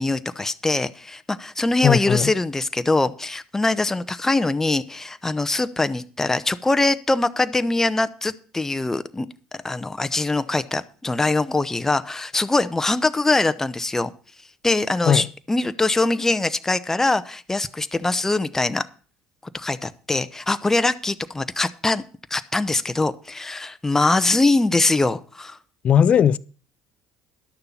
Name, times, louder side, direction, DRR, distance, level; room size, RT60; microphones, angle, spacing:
voice 1, 0.0-9.3 9.6-14.1 14.6-18.8 19.5-22.0 22.3-25.6, left 2 dB, 15° left, 0.8 m, -22 dB
voice 2, 1.8-2.3 15.0-15.3 25.8-26.4, left 8 dB, 45° left, 0.5 m, -17 dB
11.5 x 6.8 x 7.2 m
hypercardioid pair, 75°, 3 cm